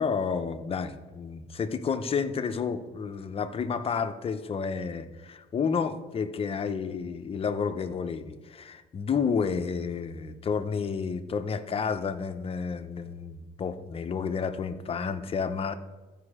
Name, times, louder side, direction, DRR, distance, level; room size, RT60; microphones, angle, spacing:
voice 1, 0.0-15.8, left 6 dB, 35° left, 8 dB, 0.8 m, -30 dB
14.0 x 5.4 x 4.9 m, 1.3 s
cardioid pair, 110°, 17 cm